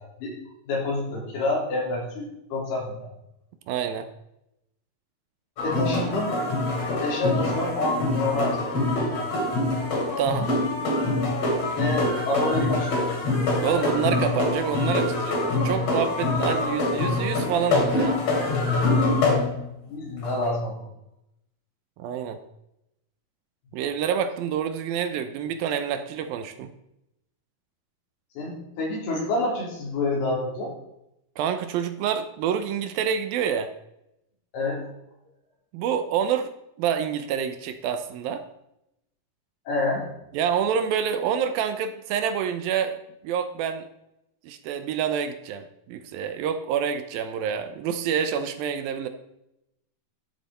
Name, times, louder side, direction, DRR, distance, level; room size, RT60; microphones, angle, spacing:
voice 1, 0.7-3.1 5.6-6.3 7.0-9.3 11.8-13.4 19.8-20.9 28.4-30.7 34.5-34.8 39.7-40.1, left 2 dB, 85° left, -3 dB, 5.5 m, -28 dB
voice 2, 3.7-4.1 10.2-10.5 13.6-18.2 22.0-22.4 23.7-26.7 31.4-33.7 35.7-36.5 36.8-38.4 40.3-43.0 43.2-43.9 44.4-49.1, right 8 dB, 75° right, 9 dB, 2.4 m, -27 dB
sound 1, 5.6-19.8 20.2-20.3, left 2 dB, 45° left, 3.4 m, -25 dB
13.0 x 8.0 x 4.2 m, 0.83 s
omnidirectional pair, 4.5 m